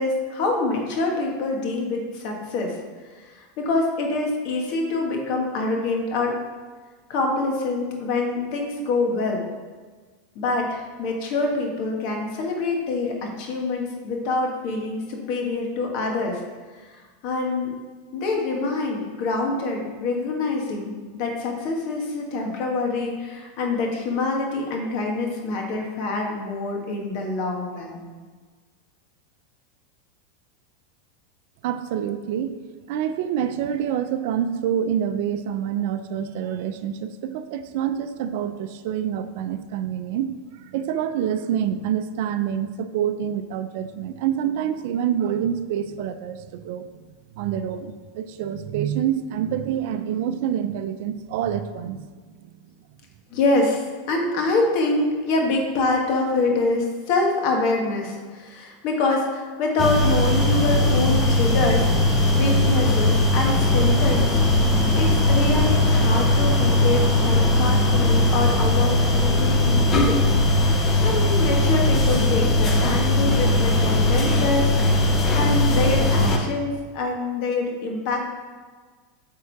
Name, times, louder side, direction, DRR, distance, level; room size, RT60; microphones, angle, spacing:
voice 1, 0.0-2.8 3.1-6.4 7.1-9.4 10.3-16.4 17.2-17.7 18.1-28.0 53.3-62.1 62.3-64.3 64.9-70.2 71.0-78.2, left 3 dB, 55° left, 1 dB, 1.5 m, -25 dB
voice 2, 31.6-47.1 47.3-52.1 52.4-52.5, right 9 dB, 65° right, 10 dB, 0.5 m, -27 dB
sound 1, 59.8-76.4, left 1 dB, 25° left, 0.9 m, -19 dB
8.3 x 3.7 x 4.6 m, 1.4 s
supercardioid pair, 130°, 0 cm